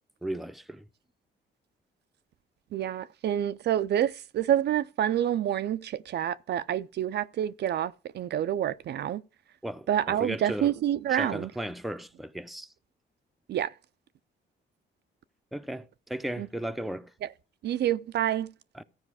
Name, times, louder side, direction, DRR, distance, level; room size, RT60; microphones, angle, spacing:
voice 1, 0.2-0.8 9.6-10.7 11.1-12.7 15.5-17.1 18.7-18.8, right 1 dB, ahead, 0.6 m, -36 dB
voice 2, 2.7-9.2 9.9-11.5 13.5-13.7 16.4-16.5 17.6-18.5, right 11 dB, 60° right, 0.4 m, -28 dB
14.0 x 4.9 x 4.8 m
cardioid pair, 90°, 20 cm